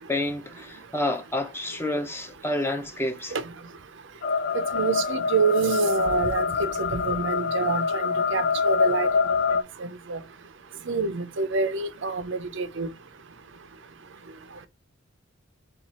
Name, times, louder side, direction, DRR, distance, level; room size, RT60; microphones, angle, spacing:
voice 1, 0.0-3.4, left 1 dB, 10° left, 0.7 m, -29 dB
sound 1, 4.2-9.6, left 5 dB, 55° left, 0.4 m, -25 dB
voice 2, 4.5-9.1 10.1-10.2 10.9-12.9, right 4 dB, 60° right, 0.6 m, -27 dB
7.1 x 2.5 x 2.9 m
head